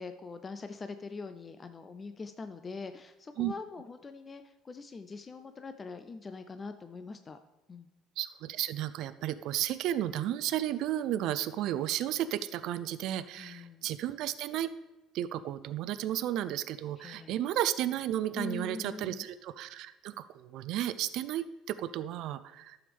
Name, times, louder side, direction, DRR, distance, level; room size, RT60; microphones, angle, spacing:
voice 1, 0.0-7.4 7.7-7.9 13.4-13.9 17.0-17.4 18.3-19.2, left 4 dB, 20° left, 9 dB, 0.4 m, -43 dB
voice 2, 8.2-14.7 15.1-22.8, right 12 dB, 65° right, 13 dB, 0.4 m, -33 dB
11.5 x 7.1 x 3.4 m, 1.1 s
cardioid pair, 145°, 0 cm